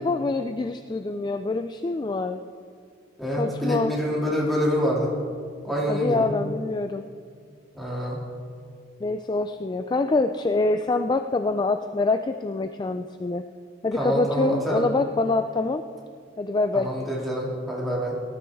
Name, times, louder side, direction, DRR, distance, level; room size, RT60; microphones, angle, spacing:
voice 1, 0.0-2.4 3.4-3.9 5.9-7.1 9.0-13.5 13.8-15.8 16.4-16.9, left 3 dB, 25° left, 8 dB, 0.3 m, -25 dB
voice 2, 3.2-5.1 5.6-6.3 7.7-8.2 13.9-14.9 16.7-18.2, equal, ahead, -5 dB, 2.5 m, -26 dB
18.5 x 12.5 x 3.5 m, 2.1 s
head